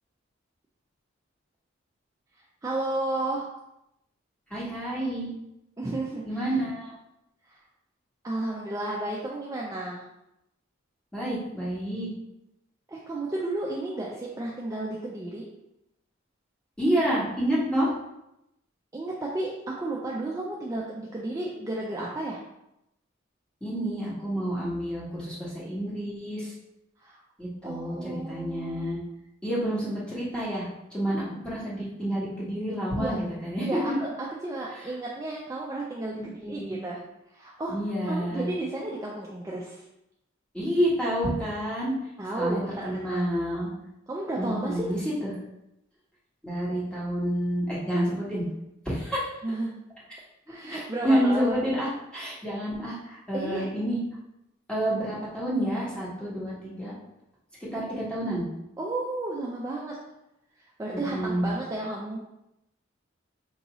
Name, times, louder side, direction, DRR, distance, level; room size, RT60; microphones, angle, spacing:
voice 1, 2.4-3.5 5.8-6.5 7.4-7.6 8.2-10.0 12.9-15.4 18.9-22.4 27.0-27.2 27.6-28.9 33.0-33.2 33.6-37.7 38.0-39.8 42.2-43.2 44.1-44.9 49.4-49.7 50.5-51.6 53.3-53.7 58.8-60.0 60.6-62.2, right 2 dB, 15° right, -4 dB, 0.4 m, -33 dB
voice 2, 4.5-5.3 6.2-6.9 11.1-12.1 16.8-17.9 23.6-26.5 27.4-29.0 29.4-34.0 36.2-36.8 37.7-38.5 40.5-41.9 42.3-43.7 44.4-45.3 46.4-48.4 48.8-49.3 50.7-54.0 54.7-56.9 57.6-58.4 60.9-61.5, equal, 5° left, -8 dB, 1.2 m, -29 dB
4.5 x 2.7 x 3.0 m, 0.86 s
head